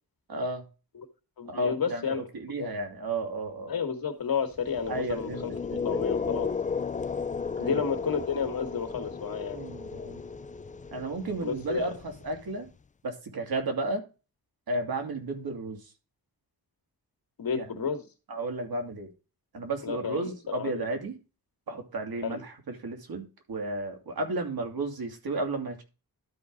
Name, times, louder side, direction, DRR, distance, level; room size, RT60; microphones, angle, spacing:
voice 1, 0.3-0.6 1.5-3.7 4.9-5.4 5.7-5.8 6.1-6.2 7.6-7.8 9.5-10.2 10.9-11.9 12.2-12.7 13.0-14.0 14.7-15.8 17.5-17.6 18.3-19.1 19.5-21.1 21.7-25.8, right 2 dB, 80° right, 4 dB, 2.6 m, -33 dB
voice 2, 1.4-2.7 3.7-5.5 5.8-6.5 7.6-9.6 11.4-12.0 17.4-18.1 19.8-20.9 22.2-22.4, left 6 dB, 70° left, 6 dB, 1.9 m, -31 dB
sound 1, 4.6-12.7, left 5 dB, 20° left, 0.3 m, -34 dB
12.5 x 4.8 x 3.9 m, 0.31 s
wide cardioid pair, 110°, 36 cm